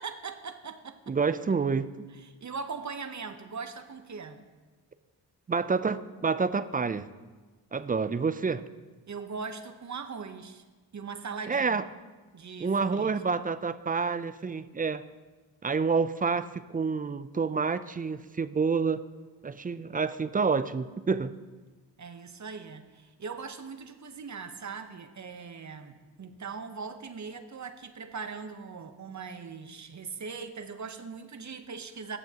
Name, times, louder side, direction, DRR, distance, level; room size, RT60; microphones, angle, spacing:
voice 1, 0.0-1.1 2.1-4.5 9.1-10.6 10.9-11.8 12.3-13.2 22.0-32.2, right 5 dB, 40° right, 8 dB, 0.9 m, -40 dB
voice 2, 1.1-2.0 5.5-7.1 7.7-8.6 11.5-11.8 12.6-15.0 15.6-19.0 19.4-21.4, right 5 dB, 20° right, 13 dB, 0.4 m, -28 dB
16.5 x 7.0 x 2.9 m, 1.3 s
supercardioid pair, 50°, 44 cm